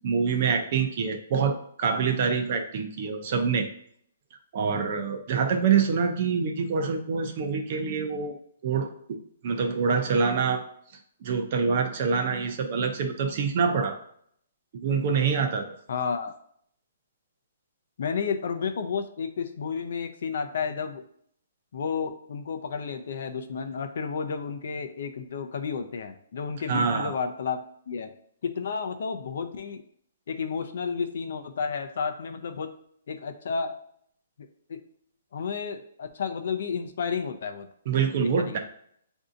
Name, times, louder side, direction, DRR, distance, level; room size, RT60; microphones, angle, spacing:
voice 1, 0.0-3.7 4.5-8.3 8.6-9.2 9.4-10.6 11.2-14.0 14.8-15.8 26.7-27.1 37.9-38.6, right 5 dB, 30° right, 5 dB, 0.5 m, -26 dB
voice 2, 15.9-16.4 18.0-21.0 21.7-28.1 28.4-29.8 30.3-32.7 33.1-33.8 34.4-34.8 35.3-37.7 38.4-38.6, left 6 dB, 50° left, 7 dB, 0.5 m, -31 dB
7.7 x 2.7 x 2.5 m, 0.66 s
hypercardioid pair, 180°, 0 cm